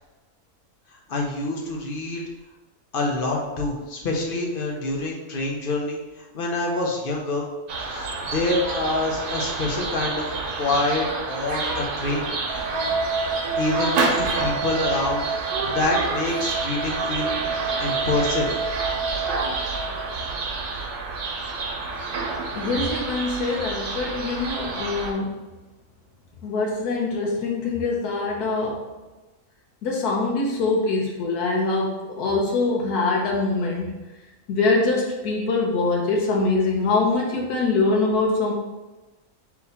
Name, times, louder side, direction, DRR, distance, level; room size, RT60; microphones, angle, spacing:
voice 1, 0.9-2.2 2.9-7.5 7.9-10.3 10.6-12.3 13.6-17.3 17.8-18.5, left 2 dB, 50° left, -1 dB, 0.7 m, -26 dB
sound 1, 7.7-25.1, right 3 dB, 90° right, 1.3 m, -29 dB
sound 2, 12.5-20.2, right 4 dB, 55° right, 1.1 m, -29 dB
voice 2, 22.5-25.3 26.4-28.9 29.8-34.0 34.5-38.5, left 3 dB, 85° left, -1 dB, 1.3 m, -23 dB
4.0 x 2.8 x 4.1 m, 1.1 s
omnidirectional pair, 1.6 m